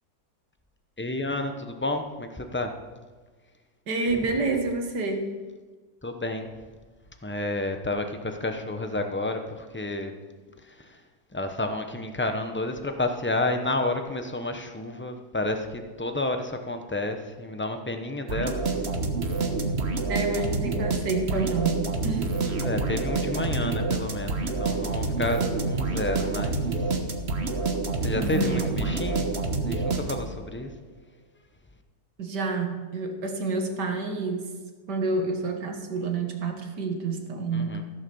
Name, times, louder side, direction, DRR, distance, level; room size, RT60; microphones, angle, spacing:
voice 1, 1.0-2.7 6.0-6.5 7.2-10.1 10.6-11.0 11.3-18.8 22.4-27.0 28.0-29.3 29.6-30.7 37.5-37.8, left 2 dB, 15° left, 6 dB, 0.4 m, -30 dB
voice 2, 3.9-5.3 20.1-21.8 22.0-22.3 28.2-28.7 32.2-34.5 34.9-37.8, right 3 dB, 70° right, 4 dB, 2.2 m, -28 dB
sound 1, 18.3-30.5, right 3 dB, 40° right, 1.3 m, -28 dB
15.5 x 6.5 x 7.0 m, 1.4 s
omnidirectional pair, 1.9 m